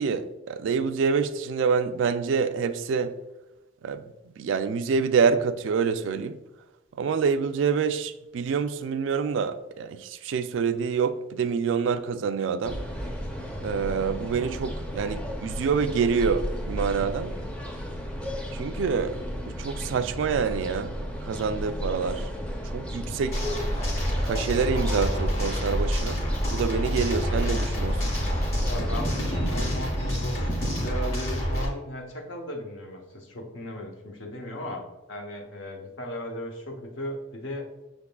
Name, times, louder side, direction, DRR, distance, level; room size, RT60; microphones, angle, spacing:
voice 1, 0.0-3.1 3.8-4.0 4.4-6.4 7.0-12.8 13.6-17.3 18.5-19.2 19.6-21.0 21.2-22.2 22.7-23.4 24.2-28.1, right 5 dB, 80° right, 0.3 m, -26 dB
sound 1, 12.6-29.7, equal, 5° left, 0.5 m, -33 dB
sound 2, 23.3-31.7, equal, 35° left, 1.4 m, -28 dB
voice 2, 28.6-37.7, left 1 dB, 85° left, 0.8 m, -37 dB
6.1 x 3.5 x 2.2 m
head